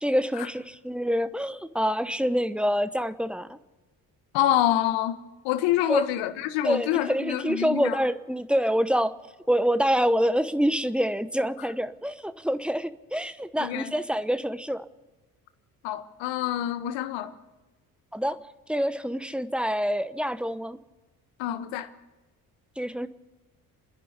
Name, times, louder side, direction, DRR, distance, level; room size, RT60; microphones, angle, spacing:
voice 1, 0.0-3.6 5.9-6.0 6.6-9.1 9.5-14.8 18.1-18.4 18.7-20.8 22.8-23.1, equal, ahead, 1.0 m, -26 dB
voice 2, 4.3-5.2 5.4-8.0 13.6-13.9 15.8-17.3 21.4-21.9, left 12 dB, 65° left, 1.5 m, -26 dB
29.5 x 10.5 x 8.2 m
hypercardioid pair, 50°, 47 cm